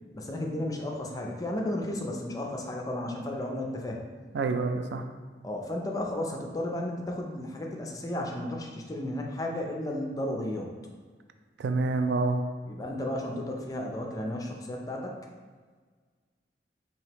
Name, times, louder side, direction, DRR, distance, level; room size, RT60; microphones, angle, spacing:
voice 1, 0.1-4.0 5.4-10.7 12.7-15.2, left 1 dB, 20° left, 1 dB, 0.4 m, -33 dB
voice 2, 4.3-5.0 11.6-12.4, right 3 dB, 70° right, 7 dB, 0.3 m, -27 dB
4.8 x 2.9 x 3.0 m, 1.5 s
head